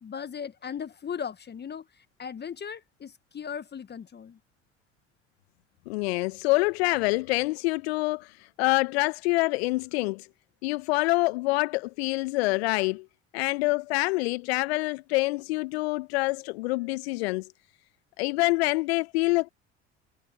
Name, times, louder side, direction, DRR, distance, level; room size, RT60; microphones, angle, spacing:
voice 1, 0.0-4.4, left 7 dB, 30° left, 1.6 m, -38 dB
voice 2, 5.9-10.3 10.6-13.1 13.3-17.5 18.2-19.5, left 23 dB, 70° left, 1.1 m, -26 dB
figure-of-eight pair, 60°, 33 cm